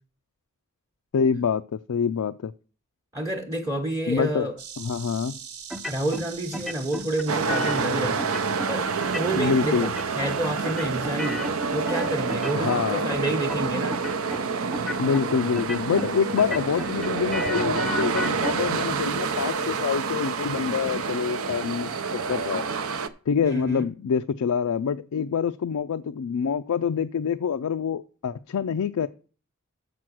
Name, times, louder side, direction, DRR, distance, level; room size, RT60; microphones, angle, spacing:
voice 1, 1.1-2.5 4.1-5.4 9.4-9.9 12.5-13.1 15.0-22.7 23.3-29.1, left 6 dB, 80° left, 0.4 m, -26 dB
voice 2, 3.1-4.5 5.9-8.3 8.7-8.9 9.1-11.4 11.7-14.0 23.4-23.9, right 1 dB, 15° right, 1.0 m, -29 dB
Insect, 4.6-9.6, right 7 dB, 85° right, 1.3 m, -43 dB
sound 1, 5.7-6.3 6.5-7.9 8.2-8.7 9.0-9.5 9.8-10.4 10.6-12.8 13.1-13.6 13.9-14.4 14.7-15.2 15.6-16.1 16.4-18.5, left 1 dB, ahead, 0.5 m, -33 dB
sound 2, 7.3-23.1, right 5 dB, 70° right, 0.7 m, -28 dB
7.3 x 6.0 x 6.2 m
head